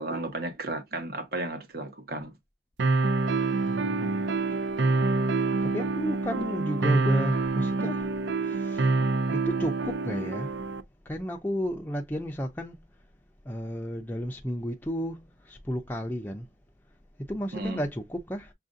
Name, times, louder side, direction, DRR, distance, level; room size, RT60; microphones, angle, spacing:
voice 1, 0.0-2.3 7.8-7.9 17.5-17.8, right 2 dB, 50° right, 1.1 m, -34 dB
sound 1, 2.8-10.8, right 3 dB, 70° right, 0.5 m, -26 dB
voice 2, 3.6-4.3 5.6-8.1 8.4-8.9 9.3-10.6 11.1-12.8 13.5-16.5 17.3-18.5, equal, 10° left, 0.4 m, -33 dB
6.3 x 2.6 x 2.4 m
head